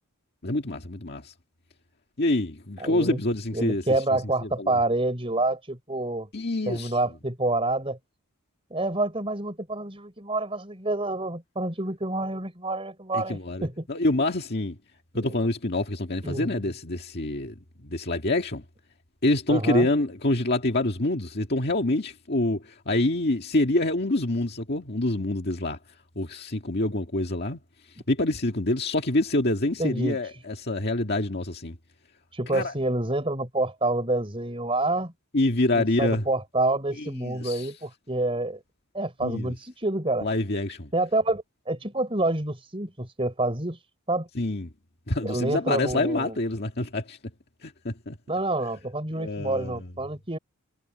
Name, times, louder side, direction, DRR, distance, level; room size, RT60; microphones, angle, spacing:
voice 1, 0.4-1.3 2.2-3.8 4.4-4.8 6.3-7.0 13.1-14.8 15.1-17.5 17.8-18.6 19.2-25.8 26.2-27.6 28.1-31.8 32.5-32.7 35.3-36.2 37.2-37.7 39.2-39.5 40.2-40.9 44.4-44.7 45.1-47.2 47.6-48.2 49.2-49.9, left 2 dB, 50° left, 2.0 m, -26 dB
voice 2, 2.8-3.2 3.5-6.3 6.7-8.0 8.7-13.9 15.1-15.3 16.2-16.6 19.5-19.9 29.8-30.2 32.3-35.1 35.7-38.6 38.9-40.3 40.9-43.8 44.1-44.3 45.2-46.4 48.3-50.4, right 2 dB, 25° right, 4.7 m, -28 dB
head